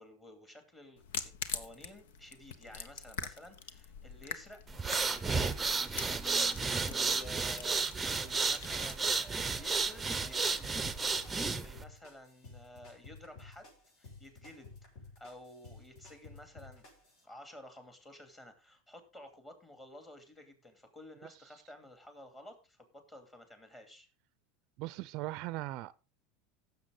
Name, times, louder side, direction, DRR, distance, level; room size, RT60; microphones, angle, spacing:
voice 1, 0.0-4.6 5.3-6.0 6.6-10.7 11.3-13.7 14.0-14.7 15.2-16.9 17.2-24.1, left 1 dB, 15° left, 2.7 m, -53 dB
sound 1, 1.0-11.7, left 7 dB, 90° left, 1.2 m, -46 dB
sound 2, 4.7-11.8, right 4 dB, 10° right, 0.8 m, -32 dB
sound 3, 10.8-17.2, left 3 dB, 55° left, 6.4 m, -54 dB
voice 2, 24.8-25.9, right 18 dB, 50° right, 0.5 m, -39 dB
16.0 x 7.1 x 3.9 m
supercardioid pair, 150°, 0 cm